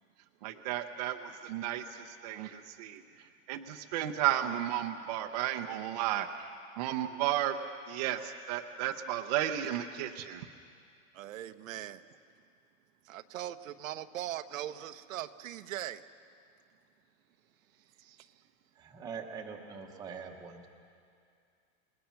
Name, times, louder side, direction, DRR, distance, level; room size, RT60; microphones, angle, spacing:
voice 1, 0.4-3.0 3.5-7.6 7.9-10.5, right 12 dB, 30° right, 5 dB, 0.7 m, -33 dB
voice 2, 11.1-12.0 13.0-16.0 18.0-18.3, right 12 dB, 90° right, 9 dB, 1.0 m, -40 dB
voice 3, 18.7-20.7, right 6 dB, 10° right, 1 dB, 1.0 m, -43 dB
28.0 x 20.0 x 5.8 m, 2.3 s
supercardioid pair, 180°, 39 cm